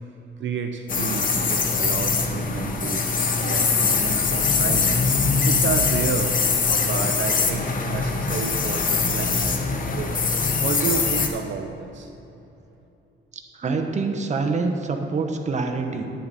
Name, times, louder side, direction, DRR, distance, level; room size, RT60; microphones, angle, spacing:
voice 1, 0.4-3.1 3.4-5.1 5.4-6.4 6.8-10.2 10.6-12.1, right 6 dB, 65° right, 5 dB, 0.6 m, -31 dB
sound 1, 0.9-11.3, left 4 dB, 40° left, 0.9 m, -22 dB
voice 2, 13.5-16.0, right 4 dB, 35° right, 4 dB, 0.9 m, -25 dB
10.5 x 8.9 x 4.1 m, 3.0 s
cardioid pair, 135°, 21 cm